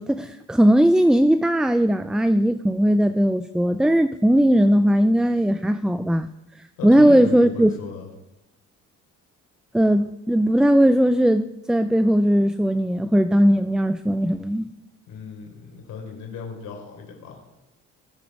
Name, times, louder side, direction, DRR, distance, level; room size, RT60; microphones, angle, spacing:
voice 1, 0.0-6.3 6.8-7.7 9.7-14.7, equal, ahead, 11 dB, 0.4 m, -18 dB
voice 2, 6.8-8.1 15.1-17.4, left 5 dB, 85° left, 1 dB, 3.9 m, -36 dB
20.0 x 7.1 x 4.7 m, 0.95 s
cardioid pair, 90°, 30 cm